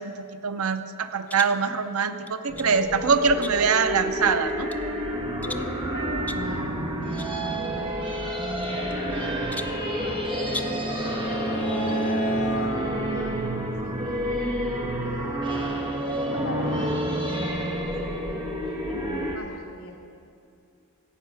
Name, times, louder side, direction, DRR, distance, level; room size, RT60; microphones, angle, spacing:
voice 1, 0.0-4.7, right 5 dB, 75° right, 9 dB, 0.6 m, -24 dB
sound 1, 1.3-1.6 2.3-2.8 3.4-3.8 4.3-4.9 5.4-5.8 6.3-6.5 7.2-7.4 7.6-7.7 8.6-9.2 9.5-9.9 10.5-10.9, left 2 dB, 5° left, 0.3 m, -38 dB
sound 2, 2.5-19.4, right 1 dB, 25° right, 1.3 m, -29 dB
voice 2, 5.4-9.2 9.9-11.0 11.6-15.8 16.2-17.7 18.0-18.4 18.9-19.9, left 1 dB, 75° left, 0 dB, 2.7 m, -41 dB
Bowed string instrument, 9.3-13.1, right 1 dB, 45° left, 1.1 m, -31 dB
15.0 x 8.6 x 5.8 m, 2.5 s
head